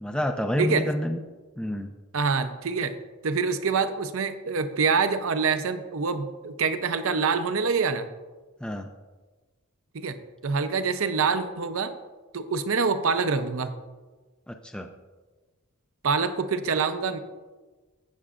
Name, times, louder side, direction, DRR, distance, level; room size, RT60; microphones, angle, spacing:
voice 1, 0.0-1.2 1.6-1.9 8.6-8.9 14.5-14.9, equal, 5° left, 5 dB, 0.3 m, -28 dB
voice 2, 2.1-3.0 3.2-8.1 9.9-10.2 10.4-11.9 12.3-13.8 16.0-17.2, right 5 dB, 65° right, 10 dB, 0.6 m, -25 dB
15.0 x 7.3 x 2.5 m, 1.3 s
head